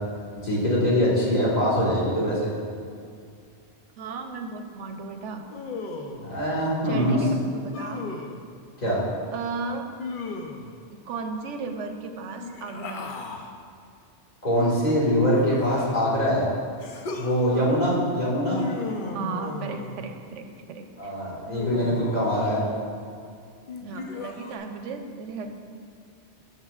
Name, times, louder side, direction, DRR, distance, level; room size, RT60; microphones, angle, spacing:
voice 1, 0.4-2.5 6.2-7.2 8.8-9.0 14.4-16.5 17.2-18.6 21.0-22.6, equal, 35° left, -7 dB, 2.0 m, -23 dB
voice 2, 4.0-5.4 6.8-8.0 9.3-9.9 11.1-13.1 17.5-17.7 19.1-21.1 23.8-25.5, right 4 dB, 90° right, 6 dB, 1.0 m, -35 dB
Human voice, 5.5-6.3 7.7-8.4 10.0-10.8 12.3-13.5 14.6-16.1 16.8-17.3 18.5-20.1 21.5-22.7 23.7-24.6, left 3 dB, 55° left, 0.7 m, -36 dB
13.5 x 5.8 x 2.4 m, 2.4 s
omnidirectional pair, 1.2 m